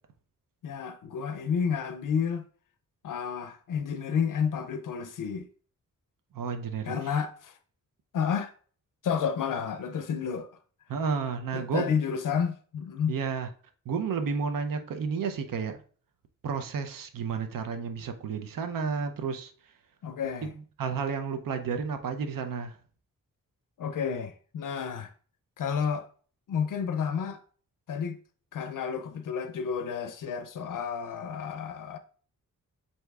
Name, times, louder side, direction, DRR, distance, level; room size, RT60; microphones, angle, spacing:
voice 1, 0.6-2.4 3.0-5.5 6.9-7.6 8.1-8.5 9.0-10.5 11.5-13.2 20.0-20.5 23.8-25.1 25.6-26.1 26.5-27.4 27.9-28.2 28.5-32.0, left 7 dB, 75° left, 0.5 m, -30 dB
voice 2, 6.3-6.9 10.9-11.9 13.1-13.5 13.9-15.8 16.4-19.5 20.8-22.8, right 5 dB, 85° right, 0.6 m, -31 dB
7.9 x 2.7 x 2.3 m
wide cardioid pair, 85°, 33 cm